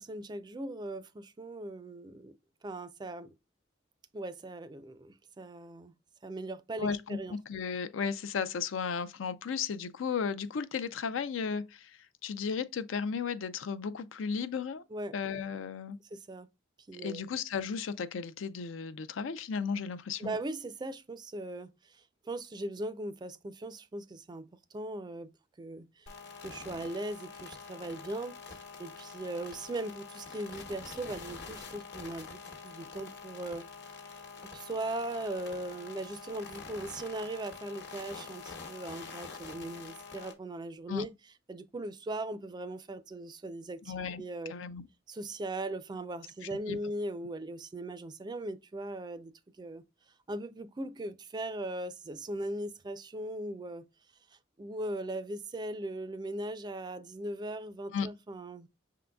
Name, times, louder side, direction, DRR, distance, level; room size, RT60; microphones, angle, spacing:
voice 1, 0.0-2.3 2.6-3.3 4.1-5.9 6.2-7.4 14.9-15.1 16.1-16.5 16.9-17.2 20.2-22.0 22.3-25.3 25.6-26.1 26.4-33.7 34.2-34.3 34.5-41.1 41.5-44.5 45.1-49.8 50.3-53.9 54.6-58.7, right 1 dB, 20° right, 0.4 m, -39 dB
voice 2, 6.8-14.8 15.1-16.0 16.9-20.3 40.9-41.1 43.9-44.2 44.5-44.9 46.7-46.8 57.9-58.1, left 6 dB, 80° left, 0.4 m, -35 dB
sound 1, 26.1-40.3, left 5 dB, 60° left, 1.1 m, -46 dB
5.8 x 3.8 x 2.2 m
head